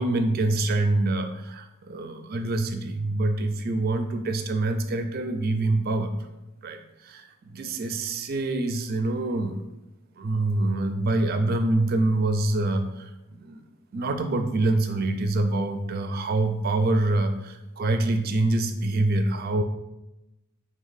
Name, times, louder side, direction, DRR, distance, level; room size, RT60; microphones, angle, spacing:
voice 1, 0.0-6.1 6.6-6.8 7.0-9.6 10.2-13.6 13.9-19.6, right 2 dB, 45° right, 7 dB, 0.4 m, -25 dB
3.7 x 3.1 x 4.0 m, 0.94 s
head